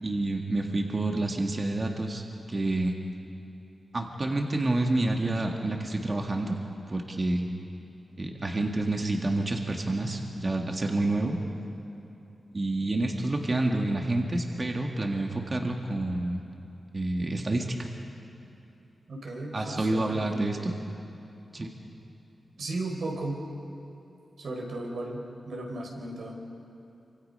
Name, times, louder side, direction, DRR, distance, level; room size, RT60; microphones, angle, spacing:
voice 1, 0.0-2.9 3.9-6.6 6.9-7.5 8.2-11.4 12.5-16.4 16.9-17.9 19.5-20.7 21.5-21.7, right 2 dB, 30° right, 2 dB, 1.8 m, -28 dB
voice 2, 19.1-20.5 22.6-23.4 24.4-26.4, right 2 dB, 70° right, 1 dB, 4.5 m, -35 dB
28.0 x 25.5 x 5.5 m, 2.9 s
wide cardioid pair, 160°, 0 cm